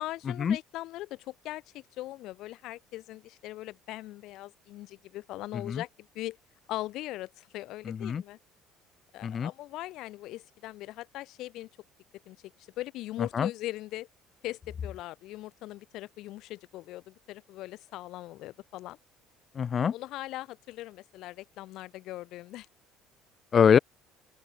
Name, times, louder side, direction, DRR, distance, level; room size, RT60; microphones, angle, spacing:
voice 1, 0.0-6.4 6.7-8.4 9.1-11.7 12.2-14.1 14.4-19.0 19.9-22.7, left 16 dB, 60° left, 1.7 m, -40 dB
voice 2, 7.9-8.2 9.2-9.5 13.3-13.5 19.5-19.9 23.5-23.8, left 7 dB, 30° left, 0.9 m, -24 dB
open air
cardioid pair, 160°, 0 cm